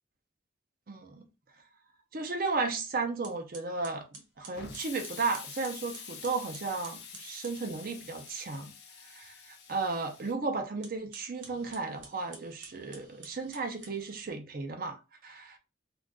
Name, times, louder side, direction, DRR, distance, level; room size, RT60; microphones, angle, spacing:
voice 1, 0.9-1.3 2.1-4.0 4.4-8.7 9.1-15.6, right 3 dB, 50° right, 0.5 m, -34 dB
sound 1, 2.8-2.9 3.2-7.6 10.7-14.4, right 4 dB, 80° right, 0.9 m, -52 dB
Explosion, 4.6-10.3, left 6 dB, 60° left, 0.6 m, -47 dB
2.4 x 2.4 x 3.5 m
head